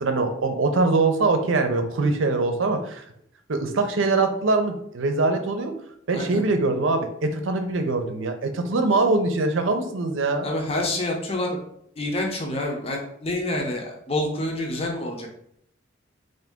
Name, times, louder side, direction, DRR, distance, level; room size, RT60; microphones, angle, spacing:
voice 1, 0.0-3.0 3.5-5.7 6.1-10.5, right 3 dB, 85° right, 6 dB, 0.6 m, -23 dB
voice 2, 6.1-6.4 10.4-11.6 12.0-15.3, left 1 dB, 30° left, 1 dB, 0.6 m, -27 dB
3.8 x 2.6 x 3.5 m, 0.70 s
head